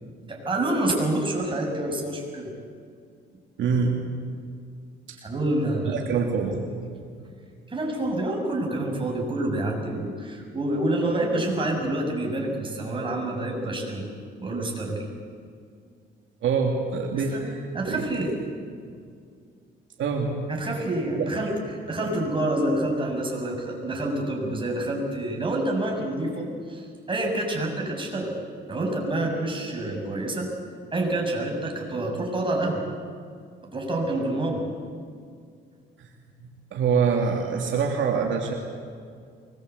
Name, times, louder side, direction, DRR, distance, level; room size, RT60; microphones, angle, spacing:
voice 1, 0.3-2.5 5.2-6.0 7.7-14.0 14.4-15.0 17.1-18.3 20.5-28.4 28.7-30.5 30.9-32.8 33.6-34.7, right 1 dB, 25° right, 0 dB, 7.0 m, -27 dB
voice 2, 3.6-3.9 5.1-5.2 5.8-6.6 16.4-17.6 17.9-18.0 20.0-20.4 21.2-21.3 36.7-38.5, right 5 dB, 70° right, 0 dB, 2.9 m, -25 dB
24.0 x 21.0 x 8.3 m, 2.2 s
cardioid pair, 90°, 20 cm